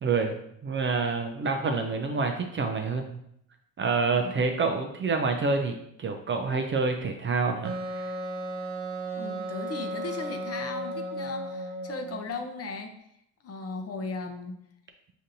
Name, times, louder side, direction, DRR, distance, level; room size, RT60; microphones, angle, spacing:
voice 1, 0.0-3.2 3.8-8.1, right 4 dB, 30° right, 4 dB, 0.4 m, -28 dB
Wind instrument woodwind instrument, 7.6-12.3, right 1 dB, 50° right, 0.8 m, -35 dB
voice 2, 9.2-12.9 13.4-14.6, left 3 dB, 35° left, 5 dB, 0.7 m, -37 dB
5.0 x 2.6 x 2.6 m, 0.74 s
supercardioid pair, 70°, 41 cm